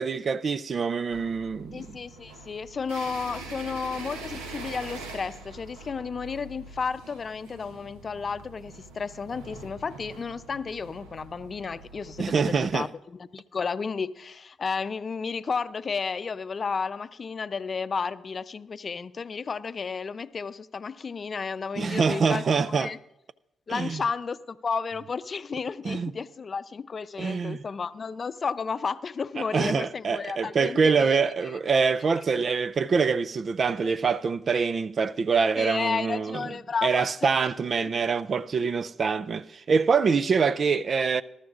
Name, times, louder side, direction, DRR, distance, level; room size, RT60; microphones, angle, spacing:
voice 1, 0.0-1.9 12.2-12.9 21.8-22.9 23.7-24.0 25.8-26.1 27.2-27.6 29.4-36.4 36.8-41.2, right 5 dB, 55° right, 0.4 m, -25 dB
sound 1, 1.1-12.6, right 3 dB, 85° right, 0.9 m, -44 dB
voice 2, 1.7-23.0 23.7-31.2 31.5-31.6 35.6-37.5 37.8-37.9, left 5 dB, 50° left, 0.5 m, -32 dB
21.0 x 12.5 x 2.5 m
hypercardioid pair, 45°, 0 cm